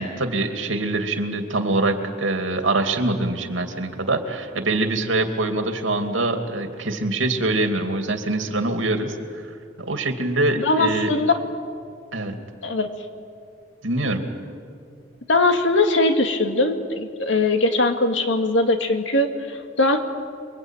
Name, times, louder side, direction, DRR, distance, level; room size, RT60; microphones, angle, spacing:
voice 1, 0.0-9.5 9.8-11.1 12.1-12.3 13.8-14.2, right 2 dB, 90° right, 5 dB, 2.7 m, -24 dB
voice 2, 10.6-11.4 12.6-12.9 15.3-20.0, left 2 dB, 75° left, 5 dB, 2.3 m, -20 dB
29.0 x 22.5 x 9.2 m, 2.2 s
head